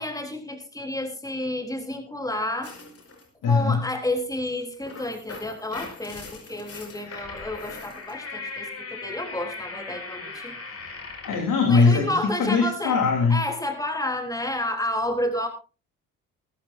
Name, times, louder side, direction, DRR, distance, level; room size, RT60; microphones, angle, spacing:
voice 1, 0.0-2.7 3.4-10.5 11.7-13.0 13.3-15.5, left 1 dB, 10° left, 5 dB, 3.7 m, -30 dB
sound 1, 2.6-3.3 4.6-11.5, left 3 dB, 40° left, 5.5 m, -39 dB
voice 2, 3.4-3.8 7.1-7.2 11.2-13.4, left 4 dB, 55° left, 4 dB, 3.7 m, -21 dB
23.0 x 13.0 x 2.7 m, 0.33 s
hypercardioid pair, 50°, 38 cm